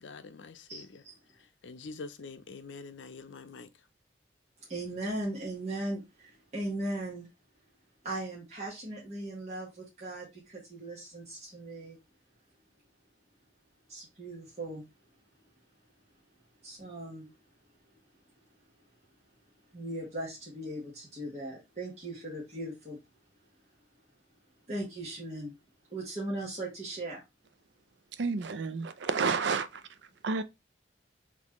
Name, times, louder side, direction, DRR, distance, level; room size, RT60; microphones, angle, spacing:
voice 1, 0.0-1.0 1.3-3.9, left 4 dB, 80° left, 0.5 m, -46 dB
voice 2, 0.7-1.1 4.6-7.3 8.0-12.0 13.9-14.8 16.6-17.3 17.8-17.9 19.7-23.0 23.9-24.0 24.7-25.6 25.9-27.2, right 1 dB, 35° right, 1.4 m, -38 dB
voice 3, 28.2-29.8 30.2-30.4, right 4 dB, 70° right, 0.5 m, -30 dB
4.1 x 3.2 x 3.0 m
head